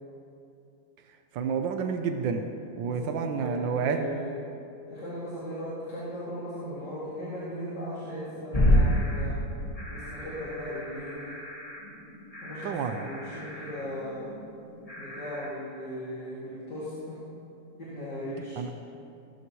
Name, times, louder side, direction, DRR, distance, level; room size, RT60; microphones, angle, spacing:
voice 1, 1.3-2.5 2.8-4.0 12.6-13.1 18.6-18.7, right 6 dB, 90° right, 6 dB, 1.4 m, -29 dB
voice 2, 2.8-4.3 4.9-9.4 9.9-11.4 12.4-14.3 15.0-17.2 17.7-18.6, equal, 65° left, -11 dB, 3.1 m, -38 dB
sound 1, 8.5-15.5, equal, 20° left, 1.6 m, -30 dB
18.0 x 13.0 x 3.1 m, 2.7 s
omnidirectional pair, 2.0 m